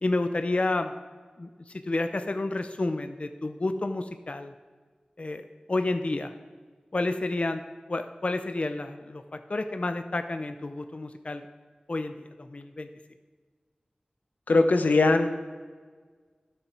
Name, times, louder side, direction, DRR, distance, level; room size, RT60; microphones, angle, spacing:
voice 1, 0.0-0.9 1.4-4.5 5.2-6.3 6.9-7.6 7.9-11.5 11.9-12.9, left 2 dB, 45° left, 8 dB, 0.5 m, -30 dB
voice 2, 14.5-15.3, left 3 dB, 85° left, 7 dB, 0.7 m, -20 dB
11.5 x 6.7 x 4.5 m, 1.5 s
wide cardioid pair, 50°, 3 cm